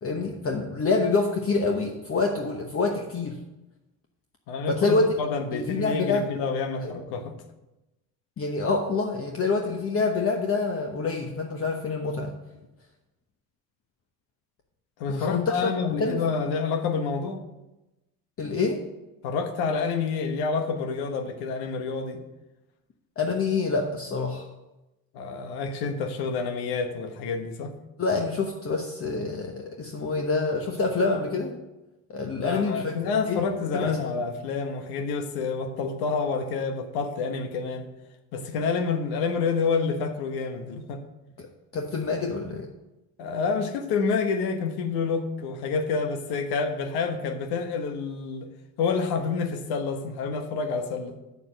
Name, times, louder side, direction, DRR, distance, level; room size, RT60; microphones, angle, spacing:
voice 1, 0.0-3.4 4.7-5.1 5.5-6.2 6.8-7.0 8.4-12.3 15.1-16.2 18.4-18.9 23.2-24.5 28.0-31.6 32.1-33.0 33.3-33.5 33.7-34.2 41.4-41.5 41.7-42.7, left 3 dB, 35° left, 2 dB, 1.1 m, -27 dB
voice 2, 4.5-7.3 15.0-17.4 19.2-22.2 25.1-27.7 32.3-37.9 38.3-41.0 43.2-48.5 48.8-51.2, left 5 dB, 80° left, 7 dB, 1.3 m, -28 dB
7.1 x 6.8 x 6.4 m, 0.99 s
supercardioid pair, 90°, 38 cm